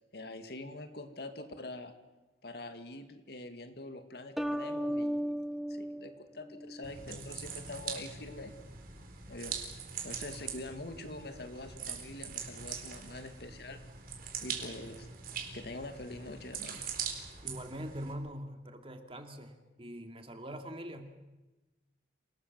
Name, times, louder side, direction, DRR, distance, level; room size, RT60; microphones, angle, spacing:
voice 1, 0.1-1.9 2.4-8.6 9.3-9.6 10.0-13.8 14.4-15.1 15.5-16.9, left 2 dB, 65° left, 7 dB, 2.3 m, -45 dB
sound 1, 4.4-7.0, equal, ahead, 0.8 m, -36 dB
sound 2, 6.8-18.1, right 6 dB, 55° right, 4.3 m, -42 dB
voice 2, 17.4-21.2, equal, 35° right, 5 dB, 2.5 m, -43 dB
27.5 x 19.0 x 7.6 m, 1.1 s
head